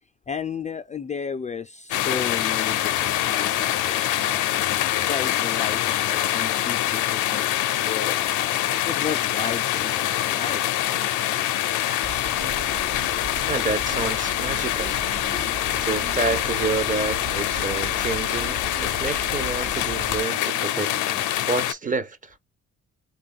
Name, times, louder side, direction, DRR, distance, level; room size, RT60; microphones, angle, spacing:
voice 1, 0.3-4.5 4.8-7.5 7.8-8.3 8.8-10.6 11.9-12.3 15.3-15.5, left 6 dB, 25° left, 0.3 m, -34 dB
sound 1, 1.9-21.7, left 13 dB, 80° left, 0.5 m, -25 dB
sound 2, 12.0-20.2, right 2 dB, 50° right, 1.2 m, -38 dB
sound 3, 12.4-21.4, right 9 dB, 70° right, 0.9 m, -45 dB
voice 2, 13.5-15.0 15.8-20.9 21.5-22.3, right 4 dB, 25° right, 0.6 m, -29 dB
3.4 x 2.3 x 3.6 m
cardioid pair, 90°, 30 cm